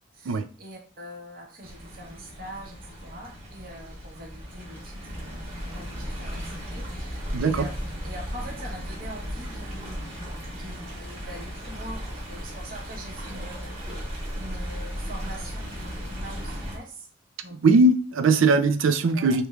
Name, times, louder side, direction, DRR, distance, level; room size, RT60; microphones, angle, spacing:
voice 1, 0.1-7.7 8.0-10.1 10.5-13.9 14.3-17.1 17.4-17.8 19.1-19.4, right 1 dB, 50° right, 0.9 m, -43 dB
Stream, 1.6-16.8, equal, 30° right, 1.2 m, -36 dB
voice 2, 7.3-7.7 17.6-19.5, right 3 dB, 90° right, 0.4 m, -20 dB
3.4 x 3.1 x 2.3 m
head